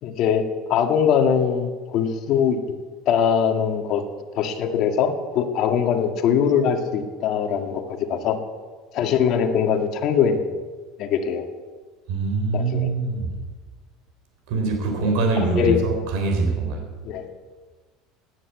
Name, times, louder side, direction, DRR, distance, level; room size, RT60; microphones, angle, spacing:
voice 1, 0.0-2.6 3.1-4.1 4.4-8.4 8.9-10.4 11.0-11.5 12.5-12.9 15.6-15.8 17.0-17.3, left 7 dB, 45° left, 4 dB, 2.0 m, -22 dB
voice 2, 12.1-13.3 14.5-16.9, right 3 dB, 65° right, 3 dB, 3.6 m, -23 dB
17.5 x 9.9 x 8.4 m, 1.4 s
cardioid pair, 160°, 0 cm